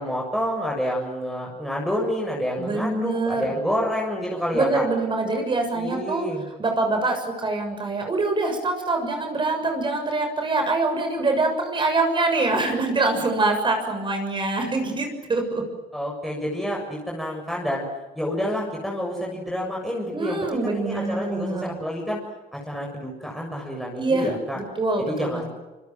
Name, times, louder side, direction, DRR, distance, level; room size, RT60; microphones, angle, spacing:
voice 1, 0.0-4.9 5.7-6.4 15.9-17.9 18.1-22.2 22.5-24.6 25.0-25.4, equal, ahead, -2 dB, 7.0 m, -28 dB
voice 2, 2.6-3.5 4.5-6.2 6.6-15.6 20.1-21.7 24.0-25.4, right 3 dB, 30° right, 4 dB, 6.9 m, -24 dB
26.0 x 24.5 x 7.7 m, 1.2 s
cardioid pair, 110°, 17 cm